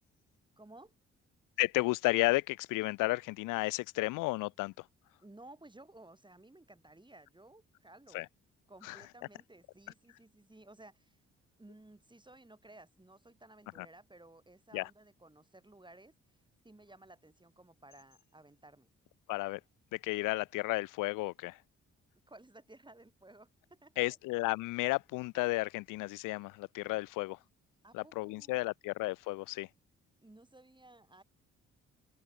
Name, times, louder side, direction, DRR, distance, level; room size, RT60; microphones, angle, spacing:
voice 1, 0.6-0.9 5.2-8.2 8.7-11.2 11.6-16.2 16.6-18.9 22.3-24.2 27.8-28.7 30.2-31.2, right 2 dB, 15° right, 7.1 m, -56 dB
voice 2, 1.6-4.7 8.1-8.3 8.8-9.0 13.8-13.9 14.7-14.9 19.3-19.6 19.9-21.6 24.0-27.4 27.9-29.7, left 22 dB, 85° left, 1.3 m, -33 dB
open air
hypercardioid pair, 50°, 31 cm